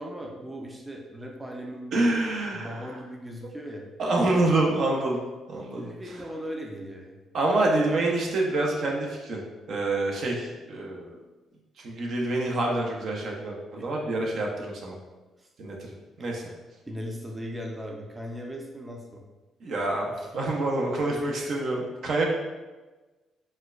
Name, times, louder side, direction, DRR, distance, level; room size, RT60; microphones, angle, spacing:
voice 1, 0.0-2.1 2.5-3.8 5.7-7.2 13.8-14.1 15.4-15.5 16.2-16.3 16.9-19.2, equal, 15° right, 0 dB, 0.4 m, -38 dB
voice 2, 1.9-2.8 4.0-5.2 5.5-6.2 7.3-9.4 9.7-11.2 11.8-15.0 15.6-15.9 16.2-16.5 19.6-22.2, right 2 dB, 65° right, -1 dB, 0.6 m, -27 dB
4.2 x 2.2 x 2.4 m, 1.2 s
cardioid pair, 90°, 0 cm